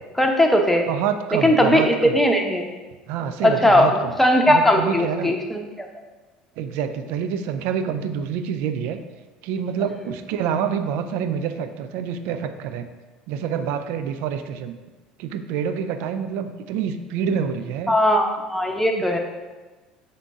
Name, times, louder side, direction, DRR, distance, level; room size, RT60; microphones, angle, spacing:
voice 1, 0.1-0.9 1.4-2.6 3.4-3.9 4.2-5.9 17.9-19.2, left 1 dB, 5° left, 3 dB, 0.8 m, -18 dB
voice 2, 0.9-2.2 3.1-4.1 4.5-5.3 6.6-9.0 9.4-12.9 13.3-14.7 15.2-17.9 18.9-19.2, right 7 dB, 60° right, 9 dB, 0.4 m, -27 dB
6.9 x 3.7 x 3.7 m, 1.2 s
figure-of-eight pair, 65°, 4 cm